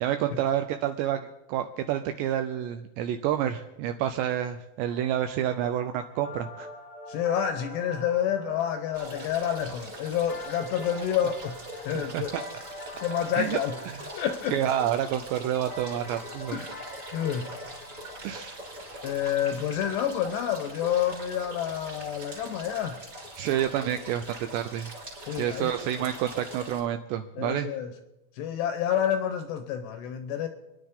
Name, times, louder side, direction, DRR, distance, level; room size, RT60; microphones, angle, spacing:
voice 1, 0.0-6.7 11.9-12.2 13.3-13.6 13.9-14.0 14.5-16.7 18.2-18.6 18.9-19.1 23.4-24.9 25.3-27.7, right 10 dB, 85° right, 2.5 m, -29 dB
sound 1, 4.9-20.6, left 2 dB, 45° left, 0.8 m, -46 dB
voice 2, 7.1-12.3 13.0-13.7 14.2-14.6 16.5-16.8 17.1-17.5 19.0-23.0 25.3-25.7 27.4-27.9 28.4-30.5, left 9 dB, 75° left, 2.6 m, -29 dB
sound 2, 8.9-26.8, equal, 20° right, 2.6 m, -42 dB
29.5 x 10.5 x 3.7 m
omnidirectional pair, 5.6 m